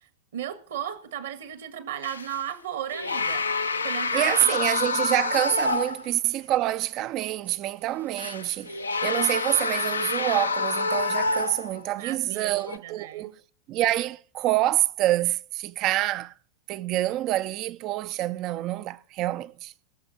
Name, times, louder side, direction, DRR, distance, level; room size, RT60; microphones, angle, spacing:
voice 1, 0.0-3.4 3.8-4.6 12.0-13.3, right 10 dB, 60° right, 1.7 m, -35 dB
sound 1, 2.0-2.5 2.9-6.1 6.5-6.6 8.2-11.9 12.6-12.8, left 3 dB, 75° left, 0.8 m, -27 dB
voice 2, 4.1-13.4 13.7-16.3 16.7-19.7, right 15 dB, 40° right, 0.6 m, -27 dB
18.0 x 6.9 x 6.8 m
figure-of-eight pair, 90°, 0 cm